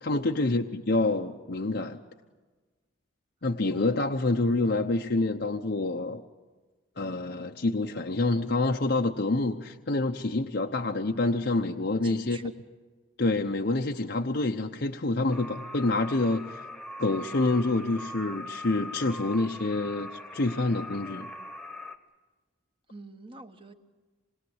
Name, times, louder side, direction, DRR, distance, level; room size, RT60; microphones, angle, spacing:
voice 1, 0.0-2.0 3.4-6.2 7.0-12.4 13.2-16.6 17.0-21.3, left 2 dB, 55° left, 3 dB, 0.8 m, -27 dB
voice 2, 12.0-12.5 22.9-23.7, right 3 dB, 25° right, 7 dB, 1.3 m, -46 dB
sound 1, 15.3-22.0, left 1 dB, ahead, 1.4 m, -41 dB
27.0 x 21.5 x 8.0 m, 1.3 s
head